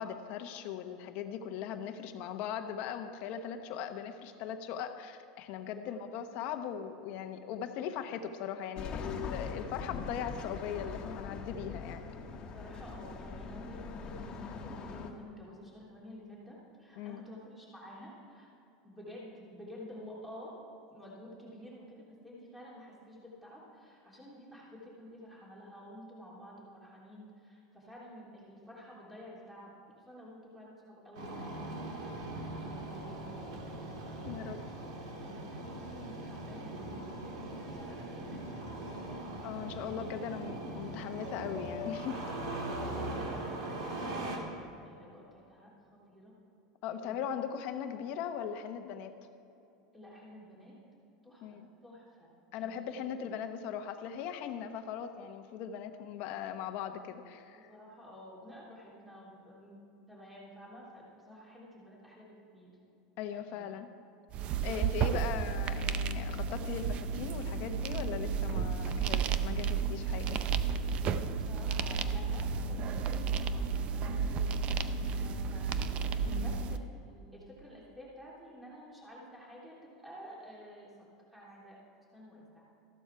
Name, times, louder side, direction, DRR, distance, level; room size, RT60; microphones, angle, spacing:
voice 1, 0.0-12.0 17.0-17.2 34.2-34.6 39.4-42.2 46.8-49.1 51.4-51.7 52.5-57.7 63.2-63.9 64.6-70.4 74.1-74.2 76.2-76.6, left 8 dB, 55° left, 7 dB, 1.0 m, -39 dB
voice 2, 5.7-6.0 12.4-18.5 18.8-20.6 20.9-29.7 30.0-34.8 35.1-36.8 37.6-39.4 39.8-40.1 42.8-45.7 46.1-46.3 47.0-47.2 49.9-50.7 51.2-52.3 52.6-53.0 57.5-59.8 60.1-62.7 63.5-63.7 64.6-65.0 71.0-80.9 81.3-81.8 82.1-82.7, equal, 5° right, -5 dB, 3.3 m, -51 dB
sound 1, 8.7-15.1, left 4 dB, 30° left, 1.5 m, -42 dB
Engine starting, 31.1-44.4, right 1 dB, 80° right, 2.4 m, -40 dB
sound 2, 64.3-76.8, right 6 dB, 40° right, 0.6 m, -32 dB
14.0 x 12.5 x 4.7 m, 2.9 s
supercardioid pair, 130°, 3 cm